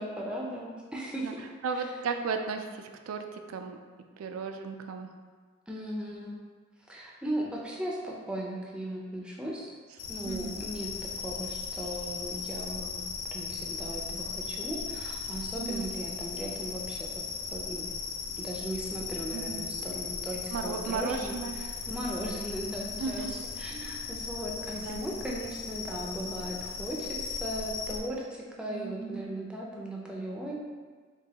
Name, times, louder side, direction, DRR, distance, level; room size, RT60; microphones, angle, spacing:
voice 1, 0.0-1.4 1.7-1.8 5.7-6.4 6.9-9.7 10.1-13.0 13.3-17.2 17.5-17.9 18.4-30.5, equal, 5° right, -3 dB, 0.4 m, -37 dB
voice 2, 1.6-3.8 4.2-5.1 10.2-10.6 15.6-15.9 19.3-19.7 20.5-21.6 23.0-23.4 24.8-25.0 28.7-29.2, right 5 dB, 85° right, 6 dB, 0.3 m, -35 dB
sound 1, 10.0-28.0, left 5 dB, 65° left, 0.4 m, -37 dB
4.8 x 2.2 x 2.9 m, 1.5 s
head